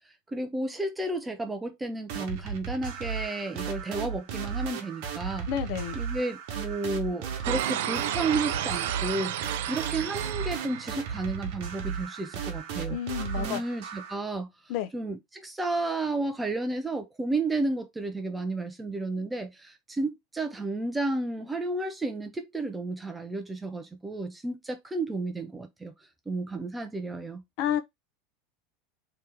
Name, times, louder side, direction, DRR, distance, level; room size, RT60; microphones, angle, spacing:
voice 1, 0.3-5.5 5.9-13.0 13.4-14.5 14.9-25.9 26.3-27.4, right 2 dB, 10° right, 0.4 m, -32 dB
sound 1, 2.1-14.2, right 7 dB, 55° right, 1.1 m, -35 dB
voice 2, 5.5-6.0 12.9-13.6 14.7-14.9 27.6-27.8, left 10 dB, 50° left, 0.5 m, -30 dB
sound 2, 7.4-11.6, right 11 dB, 80° right, 0.4 m, -32 dB
3.2 x 2.9 x 3.4 m
supercardioid pair, 170°, 0 cm